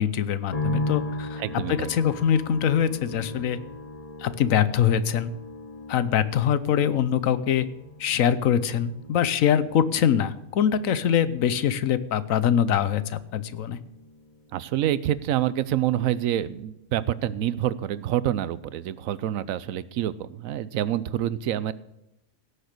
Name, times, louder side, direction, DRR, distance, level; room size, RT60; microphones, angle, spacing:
voice 1, 0.0-1.4 1.7-3.6 4.2-5.3 5.9-7.7 8.0-13.8, left 9 dB, 80° left, 15 dB, 1.2 m, -23 dB
sound 1, 0.5-15.8 16.0-16.9, left 2 dB, 30° left, 1.1 m, -38 dB
voice 2, 1.4-1.9 14.5-21.7, right 12 dB, 85° right, 17 dB, 1.0 m, -27 dB
17.0 x 6.7 x 6.6 m, 0.87 s
omnidirectional pair, 1.4 m